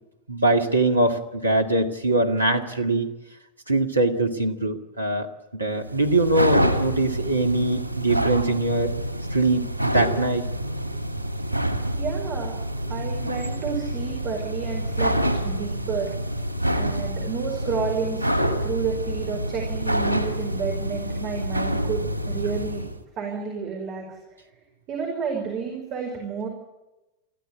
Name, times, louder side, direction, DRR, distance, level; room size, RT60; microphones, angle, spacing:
voice 1, 0.3-3.1 3.7-8.9 9.3-10.5, right 2 dB, 80° right, 6 dB, 2.0 m, -22 dB
sound 1, 5.8-23.0, equal, 85° left, 2.1 m, -27 dB
voice 2, 11.9-12.6 12.9-15.2 15.4-16.1 16.7-18.2 18.6-22.9 23.2-24.1 24.9-26.5, right 6 dB, 35° right, 0 dB, 5.2 m, -30 dB
23.5 x 15.0 x 9.4 m, 1.0 s
figure-of-eight pair, 90°, 0 cm